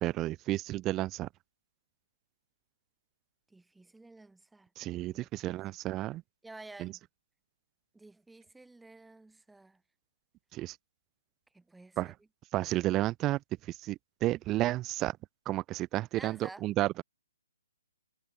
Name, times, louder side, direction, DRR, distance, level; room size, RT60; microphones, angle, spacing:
voice 1, 0.0-1.3 4.8-6.2 6.8-6.9 10.5-10.8 12.0-12.1 12.5-13.4 13.7-15.2 15.5-17.0, right 16 dB, 20° right, 0.6 m, -32 dB
voice 2, 3.5-5.6 6.4-7.0 7.9-9.8 11.5-12.1 16.1-16.6, right 2 dB, 5° right, 1.3 m, -52 dB
hypercardioid pair, 150°, 0 cm